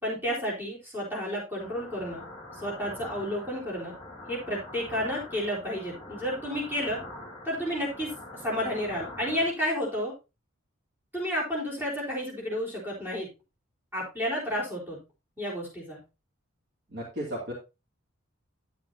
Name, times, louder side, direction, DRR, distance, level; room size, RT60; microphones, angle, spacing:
voice 1, 0.0-2.3 2.5-3.9 4.3-7.0 7.4-8.1 8.4-10.1 11.1-13.3 13.9-15.0 15.4-16.0, equal, 10° right, -5 dB, 4.1 m, -31 dB
sound 1, 1.6-9.5, left 1 dB, 20° left, 2.5 m, -44 dB
voice 2, 16.9-17.5, equal, 55° right, -5 dB, 2.8 m, -34 dB
11.5 x 7.8 x 2.8 m, 0.27 s
head